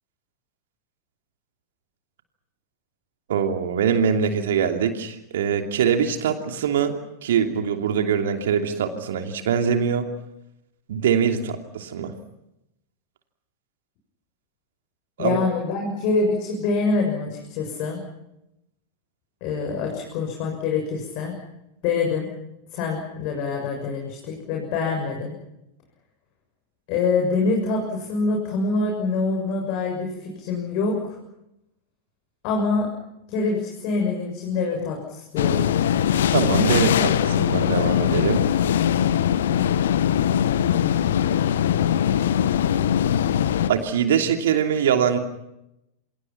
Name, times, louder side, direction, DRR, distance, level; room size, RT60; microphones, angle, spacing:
voice 1, 3.3-6.9 7.2-10.1 10.9-12.1 15.2-15.4 36.3-38.5 43.7-45.2, right 7 dB, 60° right, 6 dB, 2.9 m, -23 dB
voice 2, 15.2-18.0 19.4-21.3 21.8-22.3 22.7-25.4 26.9-31.2 32.4-32.9 33.3-35.7, left 4 dB, 45° left, 0 dB, 6.9 m, -25 dB
sound 1, 35.4-43.7, left 9 dB, 60° left, 1.3 m, -21 dB
28.5 x 27.0 x 5.9 m, 0.86 s
figure-of-eight pair, 90°, 0 cm